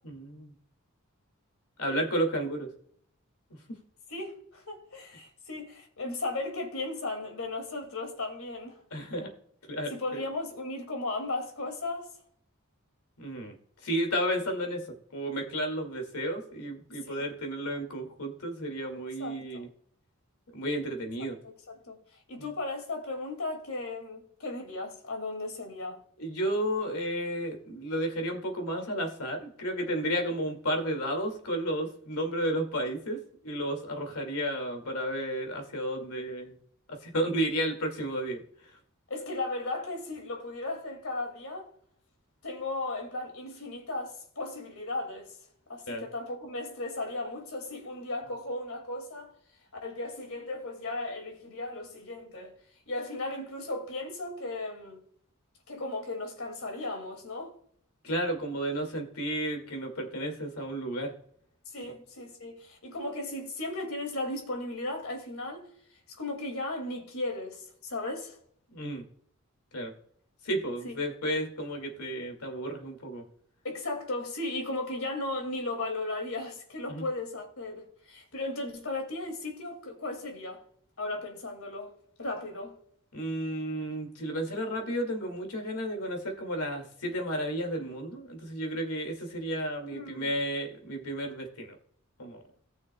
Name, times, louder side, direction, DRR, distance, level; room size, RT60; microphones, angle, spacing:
voice 1, 0.0-0.5 1.8-2.7 8.9-9.3 9.7-10.2 13.2-13.5 13.8-14.8 15.1-19.7 20.5-21.4 26.2-33.2 33.4-36.5 36.9-38.4 45.9-46.0 58.0-61.1 68.7-69.0 69.7-69.9 70.4-73.2 76.9-77.0 83.1-91.8 92.2-92.4, right 1 dB, 85° left, 2.3 m, -32 dB
voice 2, 4.1-8.8 9.9-12.1 17.1-17.3 19.2-19.6 21.4-22.0 22.3-26.0 39.1-41.7 42.4-45.3 45.7-49.3 49.8-52.5 52.9-55.0 55.7-57.5 61.7-65.7 66.2-68.4 70.8-71.0 73.6-80.6 81.0-81.9 82.2-82.7 89.9-90.4, left 2 dB, 70° left, 2.4 m, -36 dB
18.0 x 6.3 x 2.3 m
head